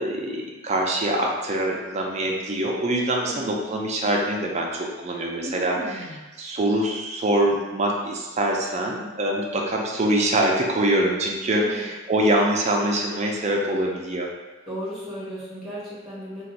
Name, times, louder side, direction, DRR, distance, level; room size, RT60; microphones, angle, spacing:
voice 1, 0.0-6.1 6.4-14.3, right 1 dB, 35° right, -1 dB, 0.4 m, -24 dB
voice 2, 5.4-6.2 11.5-11.8 14.7-16.4, equal, ahead, -11 dB, 1.3 m, -35 dB
2.5 x 2.3 x 4.0 m, 1.2 s
head